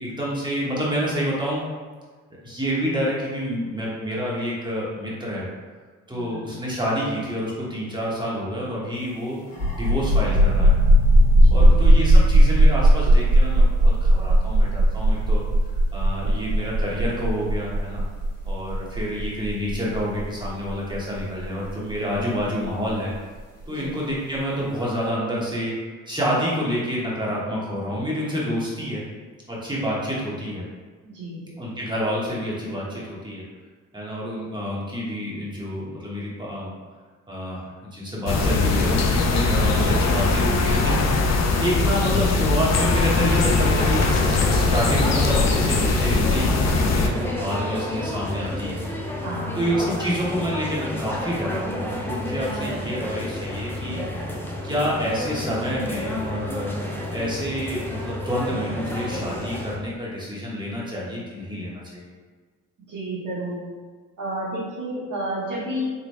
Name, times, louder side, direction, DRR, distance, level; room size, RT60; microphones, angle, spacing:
voice 1, 0.0-1.6 2.4-5.5 6.1-9.4 9.7-10.8 11.5-15.4 15.9-18.0 18.4-23.1 23.7-25.7 26.1-29.0 29.5-30.6 31.6-33.4 33.9-36.7 37.3-41.3 41.6-48.8 49.5-54.0 54.6-62.1, equal, 10° right, -6 dB, 1.4 m, -28 dB
voice 2, 6.1-6.6 11.4-11.9 23.7-24.0 31.0-31.6 49.2-49.6 62.9-63.6 64.2-65.9, right 1 dB, 55° right, -8 dB, 1.4 m, -31 dB
sound 1, 9.5-22.9, right 1 dB, 70° left, 1.2 m, -17 dB
sound 2, 38.3-47.1, left 3 dB, 45° left, 0.5 m, -21 dB
sound 3, 42.8-59.8, left 1 dB, 5° left, 0.7 m, -30 dB
3.8 x 3.0 x 2.2 m, 1.5 s
hypercardioid pair, 40°, 38 cm